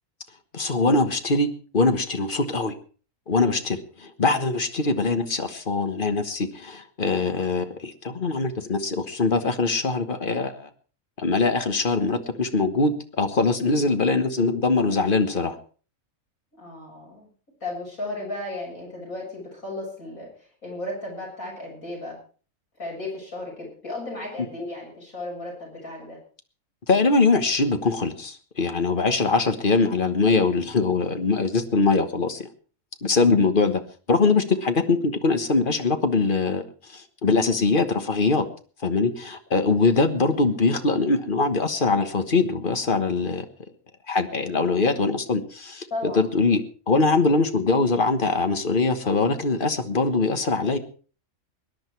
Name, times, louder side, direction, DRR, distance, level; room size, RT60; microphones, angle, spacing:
voice 1, 0.5-1.5 1.7-2.7 3.3-10.7 11.2-15.6 26.9-32.5 33.0-33.8 34.1-36.6 36.9-38.4 38.8-43.4 44.1-50.8, left 3 dB, 40° left, 8 dB, 1.5 m, -22 dB
voice 2, 16.6-17.3 17.6-22.2 22.8-26.2 29.0-29.1 45.9-46.2, left 2 dB, 80° left, -2 dB, 7.6 m, -35 dB
20.5 x 10.5 x 4.6 m, 0.40 s
omnidirectional pair, 1.4 m